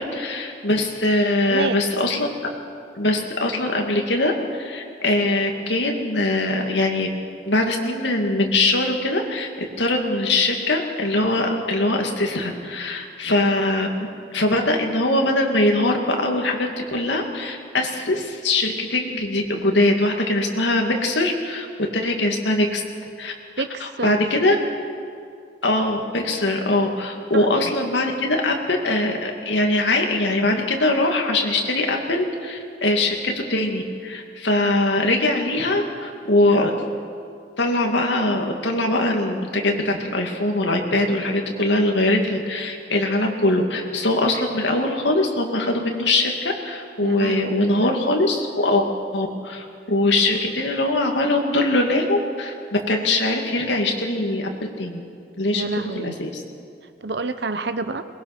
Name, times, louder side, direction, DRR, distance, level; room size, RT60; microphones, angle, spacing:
voice 1, 0.0-2.3 3.0-7.1 7.5-9.5 9.8-13.9 14.3-21.7 21.9-22.8 23.2-23.3 24.0-24.6 25.6-36.7 37.6-48.8 49.1-52.5 52.9-54.5 54.8-55.0 55.4-55.6 56.0-56.3, left 2 dB, 80° left, 2 dB, 2.4 m, -22 dB
voice 2, 23.6-24.3 27.3-27.7 47.0-47.9 55.5-56.2 57.0-58.1, right 3 dB, 65° right, 11 dB, 0.9 m, -28 dB
22.0 x 20.5 x 6.1 m, 2.3 s
head